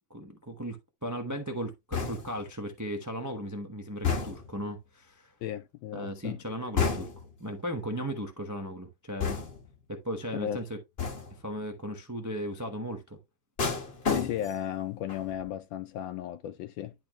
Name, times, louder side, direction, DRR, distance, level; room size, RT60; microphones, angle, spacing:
voice 1, 0.1-0.8 1.0-5.3 5.9-7.1 7.4-9.4 9.9-10.8 11.4-13.2, equal, 25° right, 0.4 m, -36 dB
sound 1, 1.9-2.5 4.0-4.6 6.8-7.4 9.2-9.8 11.0-11.4 13.6-14.7 15.1-15.5, left 5 dB, 35° left, 1.1 m, -31 dB
voice 2, 5.4-6.4 10.3-10.6 14.1-16.9, left 11 dB, 75° left, 1.1 m, -35 dB
10.5 x 4.3 x 3.0 m
omnidirectional pair, 2.4 m